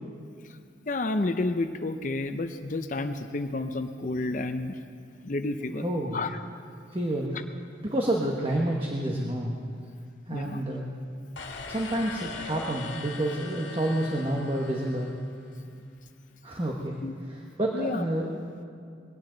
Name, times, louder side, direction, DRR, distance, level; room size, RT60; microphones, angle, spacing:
voice 1, 0.9-4.7 5.2-5.8 6.1-6.3 10.3-10.6 17.0-17.1 17.7-18.0, left 2 dB, 45° left, 8 dB, 0.6 m, -30 dB
voice 2, 5.8-6.3 6.9-7.3 7.8-9.5 10.3-10.9 11.7-15.1 16.4-17.0 17.3-18.3, right 1 dB, 30° right, -1 dB, 1.2 m, -29 dB
sound 1, 11.4-15.6, left 3 dB, 80° left, 1.7 m, -41 dB
21.5 x 17.0 x 3.9 m, 2.3 s
head